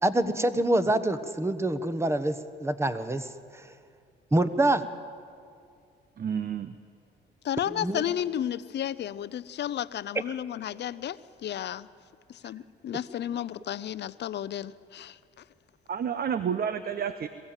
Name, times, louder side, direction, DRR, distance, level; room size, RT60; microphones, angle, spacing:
voice 1, 0.0-2.4 2.6-3.3 3.5-3.6 4.3-4.8 7.8-8.0, right 1 dB, 15° right, 11 dB, 1.2 m, -25 dB
voice 2, 6.2-6.7 15.9-17.3, right 8 dB, 50° right, 11 dB, 0.9 m, -30 dB
voice 3, 7.4-11.9 12.3-15.2, left 10 dB, 60° left, 16 dB, 0.7 m, -33 dB
22.0 x 15.5 x 9.1 m, 2.3 s
cardioid pair, 90°, 20 cm